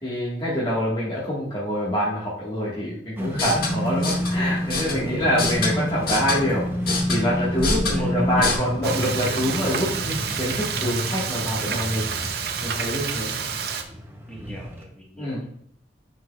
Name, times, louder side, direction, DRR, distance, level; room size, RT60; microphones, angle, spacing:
voice 1, 0.0-6.7 7.1-12.1 12.6-13.3 15.2-15.4, equal, 25° left, -9 dB, 1.6 m, -25 dB
sound 1, 3.2-14.8, equal, 10° right, 0.7 m, -33 dB
sound 2, 3.3-8.5, left 1 dB, 55° left, 1.7 m, -25 dB
voice 2, 7.9-9.8 13.3-13.7 14.3-15.5, equal, 5° left, -3 dB, 1.4 m, -43 dB
Frying (food), 8.8-13.8, right 7 dB, 60° right, 0.6 m, -29 dB
9.6 x 4.6 x 2.4 m, 0.69 s
head